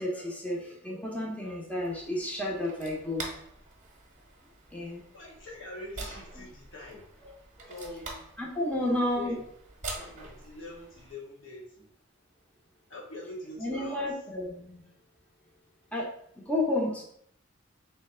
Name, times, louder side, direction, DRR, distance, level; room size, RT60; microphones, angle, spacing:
voice 1, 0.0-3.3 4.7-5.0 6.4-6.5 7.2-7.3 7.6-7.7 8.4-9.4 13.6-14.8 15.9-16.1 16.4-17.0, left 1 dB, 5° left, -3 dB, 0.7 m, -31 dB
sound 1, 1.8-11.1, right 3 dB, 40° right, 0.9 m, -45 dB
voice 2, 5.1-7.0 7.7-8.2 8.8-9.4 9.8-11.9 12.9-14.0, left 2 dB, 75° left, -4 dB, 1.5 m, -44 dB
3.2 x 2.9 x 4.3 m, 0.67 s
head